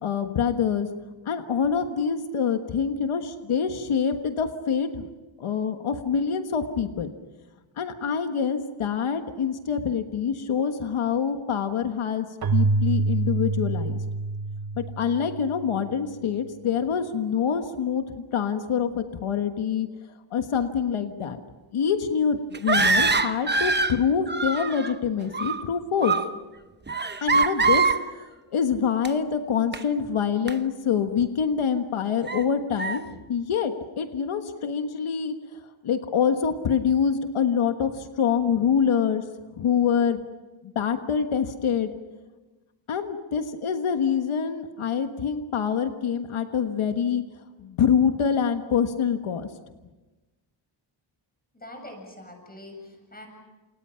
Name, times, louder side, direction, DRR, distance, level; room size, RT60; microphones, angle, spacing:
voice 1, 0.0-0.9 1.2-5.1 5.4-7.1 7.8-12.3 12.5-14.0 14.8-18.0 18.3-19.9 20.3-21.4 21.7-26.2 27.2-27.9 28.5-33.0 33.3-35.3 35.8-39.2 39.5-40.2 40.6-41.9 42.9-47.2 47.6-49.5, left 7 dB, 90° left, 7 dB, 1.5 m, -25 dB
Keyboard (musical), 12.4-15.9, right 3 dB, 45° right, 1.4 m, -26 dB
sound 1, 22.5-24.0 24.3-24.9 25.2-25.7 26.0-26.3 26.9-28.0 29.0-29.1 29.7-29.8 30.5-30.6 31.2-31.3 32.3-32.4 32.8-33.0, right 4 dB, 20° right, 0.9 m, -23 dB
voice 2, 51.5-53.3, left 1 dB, 20° left, 3 dB, 7.6 m, -43 dB
29.5 x 28.5 x 5.7 m, 1.2 s
wide cardioid pair, 135°, 48 cm